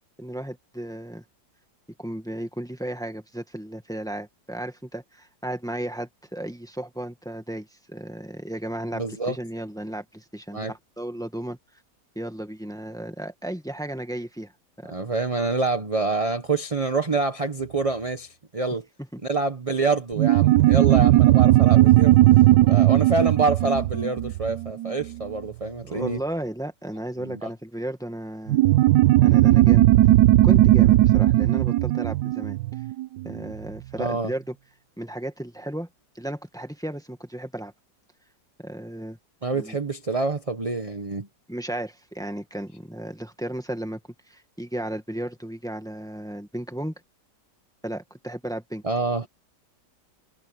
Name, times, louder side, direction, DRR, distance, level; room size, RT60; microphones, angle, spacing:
voice 1, 0.2-1.2 2.0-11.6 12.1-14.5 14.8-14.9 19.1-19.2 25.9-28.6 29.2-29.9 30.4-32.6 33.2-34.5 35.0-35.9 36.1-37.7 38.6-39.2 39.5-39.8 41.5-44.0 44.3-46.9 47.8-48.8, right 1 dB, ahead, 1.6 m, -34 dB
voice 2, 8.9-9.4 10.5-10.7 14.9-18.8 19.3-22.2 22.7-26.2 27.2-27.5 34.0-34.3 39.4-41.3 48.8-49.3, right 3 dB, 25° right, 1.1 m, -26 dB
sound 1, 20.2-25.1 28.5-33.4, right 15 dB, 80° right, 1.3 m, -17 dB
omnidirectional pair, 1.8 m